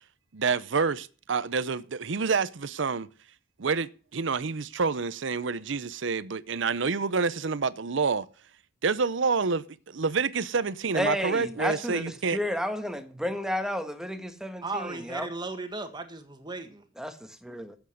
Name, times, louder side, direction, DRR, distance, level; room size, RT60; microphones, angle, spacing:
voice 1, 0.3-3.1 3.6-8.3 8.8-12.4, right 5 dB, 65° right, 0.7 m, -28 dB
voice 2, 10.9-15.3 17.0-17.7, left 1 dB, 5° right, 1.4 m, -32 dB
voice 3, 14.6-16.8, right 3 dB, 25° right, 1.8 m, -36 dB
13.5 x 8.2 x 6.4 m
head